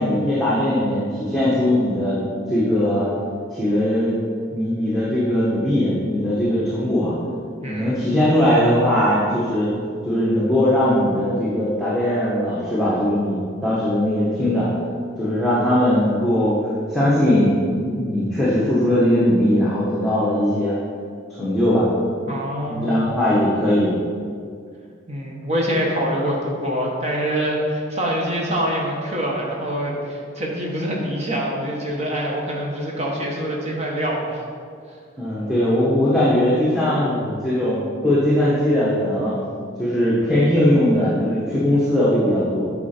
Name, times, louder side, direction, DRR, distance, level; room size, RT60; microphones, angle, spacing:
voice 1, 0.0-2.2 2.5-3.1 3.5-4.2 4.5-7.2 7.6-9.7 10.0-14.7 15.2-16.6 16.9-20.7 21.4-21.9 22.7-23.9 35.2-39.3 39.8-42.6, left 1 dB, ahead, -9 dB, 1.1 m, -19 dB
voice 2, 7.6-7.9 22.3-22.9 25.1-34.4, equal, 30° right, -2 dB, 1.2 m, -25 dB
8.3 x 4.9 x 4.3 m, 2.2 s
head